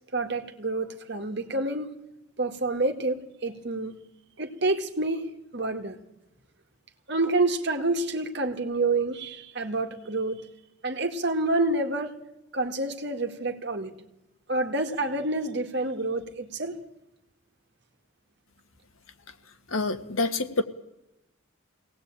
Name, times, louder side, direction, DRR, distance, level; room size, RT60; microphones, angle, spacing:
voice 1, 0.1-1.9 2.4-4.0 4.4-5.3 5.5-6.0 7.1-10.4 10.8-12.1 12.5-13.9 14.5-16.8, right 2 dB, 55° right, 6 dB, 2.0 m, -28 dB
voice 2, 19.7-20.6, left 3 dB, 85° left, 7 dB, 1.7 m, -27 dB
22.5 x 18.5 x 9.0 m, 0.93 s
head